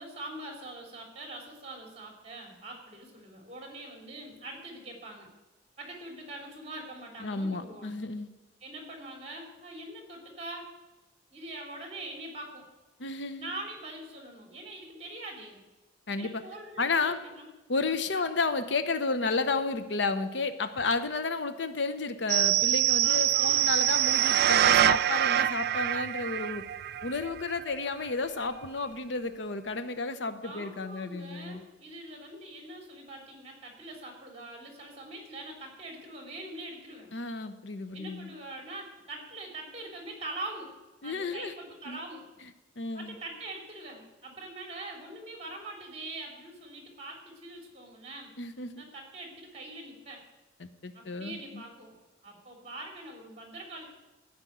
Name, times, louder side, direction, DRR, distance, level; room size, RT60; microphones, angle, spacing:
voice 1, 0.0-5.3 5.8-8.0 8.6-10.7 11.3-12.7 13.4-15.6 16.2-17.5 23.0-23.7 30.4-37.1 37.9-40.7 41.0-42.4 42.9-48.3 48.8-50.2 50.9-53.9, right 2 dB, 35° right, 2 dB, 3.0 m, -43 dB
voice 2, 7.2-8.3 13.0-13.5 16.1-16.4 16.8-17.2 17.7-26.6 27.0-31.6 37.1-38.3 41.0-41.5 41.9-42.0 42.8-43.1 48.4-48.8 50.6-51.6, left 3 dB, 70° left, 11 dB, 0.8 m, -32 dB
sound 1, 22.3-27.6 28.1-28.2, right 12 dB, 55° right, 0.3 m, -25 dB
14.0 x 5.3 x 9.1 m, 1.1 s
head